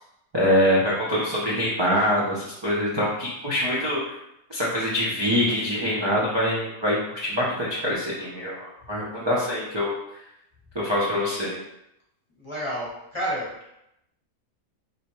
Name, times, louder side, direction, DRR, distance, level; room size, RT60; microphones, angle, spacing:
voice 1, 0.3-4.0 4.5-9.9 10.7-11.6, equal, 30° right, -7 dB, 0.4 m, -24 dB
voice 2, 12.4-13.5, equal, 25° left, -6 dB, 0.9 m, -30 dB
4.2 x 3.3 x 3.0 m, 0.83 s
omnidirectional pair, 1.6 m